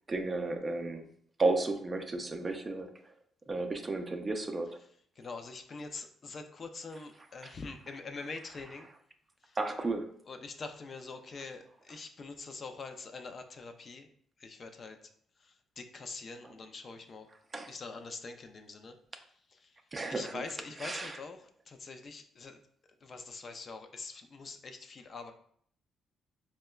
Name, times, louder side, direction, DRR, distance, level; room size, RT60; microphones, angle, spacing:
voice 1, 0.1-1.1 1.4-2.9 3.5-4.8 7.4-7.5 9.6-10.1 16.4-16.5 17.5-17.7 19.9-20.4 20.8-21.2, right 3 dB, 25° right, 5 dB, 0.4 m, -33 dB
voice 2, 5.2-8.9 9.4-9.6 10.3-14.1 14.4-15.0 15.4-17.3 17.7-18.9 20.1-22.6 23.0-25.3, left 4 dB, 45° left, 6 dB, 0.4 m, -44 dB
4.6 x 2.1 x 2.2 m, 0.63 s
cardioid pair, 90°, 0 cm